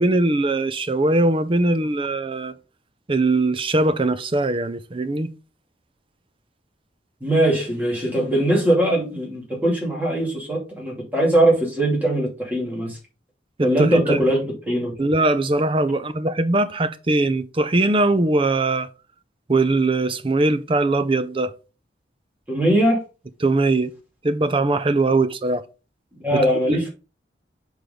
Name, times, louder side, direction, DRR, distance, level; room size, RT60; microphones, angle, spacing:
voice 1, 0.0-2.5 3.1-5.3 13.6-14.3 15.0-18.9 19.5-21.5 23.4-23.9 24.2-25.6 26.3-26.4 26.7-26.8, right 2 dB, 30° right, 0.5 m, -21 dB
voice 2, 7.2-13.0 13.6-14.9 22.5-23.0 26.2-26.8, right 1 dB, 10° right, 2.6 m, -21 dB
6.8 x 4.8 x 3.8 m
head